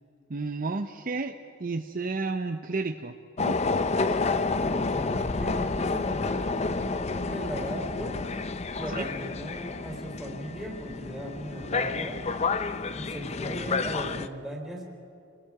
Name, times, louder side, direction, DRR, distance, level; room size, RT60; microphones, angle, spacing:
voice 1, 0.3-1.3 1.6-3.6 9.0-9.1, right 3 dB, 40° right, 7 dB, 0.6 m, -32 dB
sound 1, 3.4-14.3, left 3 dB, 30° left, 0.5 m, -30 dB
voice 2, 4.6-8.2 8.7-12.2 12.9-14.8, equal, ahead, -2 dB, 3.4 m, -37 dB
30.0 x 20.0 x 4.8 m, 2.5 s
head